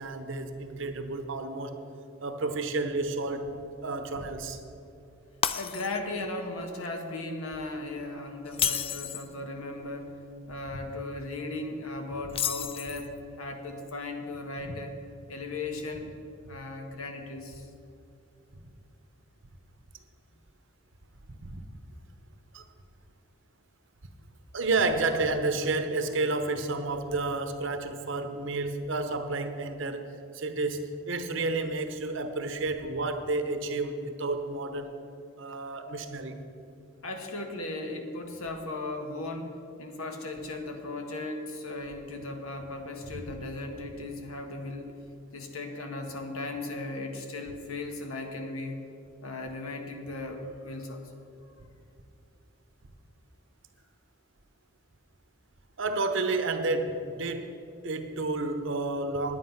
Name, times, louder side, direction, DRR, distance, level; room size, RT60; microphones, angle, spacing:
voice 1, 0.0-1.8 2.2-3.5 3.8-4.6 14.6-14.7 21.4-21.6 22.5-22.6 24.5-30.1 30.3-34.9 35.4-36.4 55.8-57.5 57.8-59.4, right 3 dB, 60° right, 7 dB, 0.9 m, -30 dB
Shatter, 5.4-6.2 6.6-6.9 8.5-9.3 12.3-13.2, left 8 dB, 25° left, 0.3 m, -31 dB
voice 2, 5.5-10.2 10.5-15.0 15.3-16.1 16.5-17.7 37.0-44.9 45.3-48.8 49.2-51.0, left 2 dB, 85° left, 4 dB, 1.4 m, -37 dB
10.0 x 9.5 x 5.7 m, 2.7 s
head